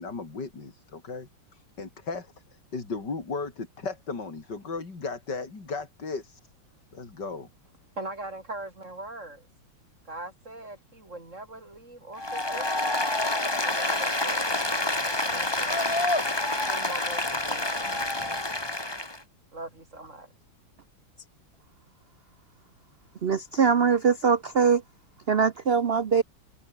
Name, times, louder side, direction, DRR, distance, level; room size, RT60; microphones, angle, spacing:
voice 1, 0.0-6.4 6.9-7.5, left 4 dB, 55° left, 4.6 m, -36 dB
voice 2, 8.0-9.5 10.1-13.1 13.6-14.6 15.0-15.9 16.6-18.6 19.5-20.3, right 2 dB, 35° right, 6.6 m, -41 dB
Applause, 12.2-19.2, left 2 dB, 10° left, 2.0 m, -27 dB
voice 3, 23.2-24.8 25.3-26.2, right 6 dB, 90° right, 0.5 m, -22 dB
omnidirectional pair, 2.3 m